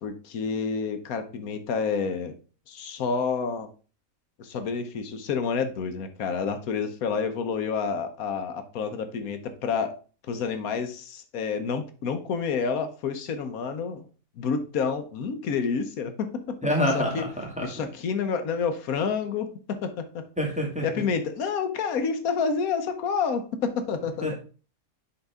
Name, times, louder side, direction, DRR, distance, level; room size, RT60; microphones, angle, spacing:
voice 1, 0.0-2.3 2.7-3.7 4.4-10.0 10.3-14.1 14.4-16.6 16.9-17.2 17.6-20.3 20.8-24.4, left 5 dB, 85° left, 8 dB, 1.3 m, -29 dB
voice 2, 16.6-17.7 20.4-20.8 24.2-24.4, left 1 dB, 5° right, -2 dB, 2.0 m, -26 dB
9.8 x 3.9 x 3.5 m, 0.37 s
omnidirectional pair, 1.5 m